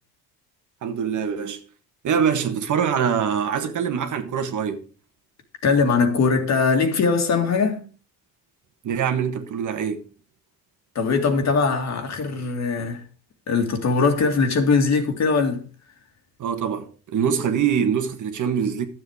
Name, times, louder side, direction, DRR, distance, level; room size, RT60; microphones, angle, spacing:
voice 1, 0.8-1.6 2.0-4.9 8.8-10.0 16.4-18.9, right 7 dB, 50° right, 1.6 m, -24 dB
voice 2, 5.6-7.8 10.9-13.0 13.5-15.6, left 4 dB, 45° left, 2.3 m, -21 dB
12.0 x 7.7 x 4.9 m
cardioid pair, 125°, 38 cm